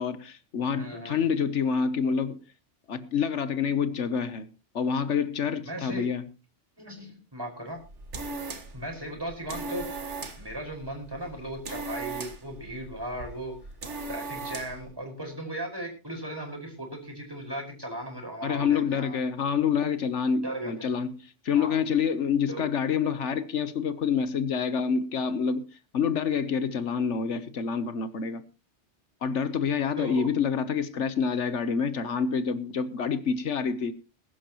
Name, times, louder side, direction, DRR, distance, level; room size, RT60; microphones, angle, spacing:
voice 1, 0.0-2.4 2.9-4.5 4.7-6.2 18.4-21.2 21.4-25.7 25.9-28.4 29.2-33.9, left 6 dB, 75° left, 1.3 m, -27 dB
voice 2, 0.7-1.3 5.6-6.1 6.8-7.8 8.7-9.8 10.4-13.5 14.1-19.2 20.4-20.7 21.5-21.8 22.5-22.7 30.0-30.3, right 1 dB, 20° right, 5.2 m, -37 dB
sound 1, 7.7-14.9, right 3 dB, 70° right, 1.9 m, -39 dB
21.0 x 11.5 x 3.0 m
omnidirectional pair, 1.2 m